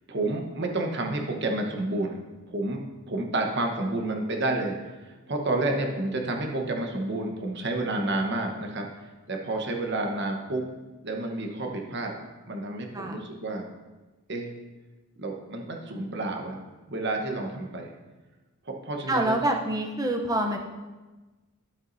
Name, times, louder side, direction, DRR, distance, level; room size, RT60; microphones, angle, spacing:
voice 1, 0.1-2.2 2.5-2.8 3.1-4.7 5.0-8.8 9.3-10.7 11.0-12.2 12.5-13.7 14.3-14.5 15.2-16.6 16.9-17.9 18.6-19.4, right 2 dB, 50° right, 2 dB, 1.1 m, -30 dB
voice 2, 19.1-20.6, right 1 dB, 15° right, 2 dB, 0.7 m, -26 dB
12.0 x 7.2 x 2.7 m, 1.2 s
head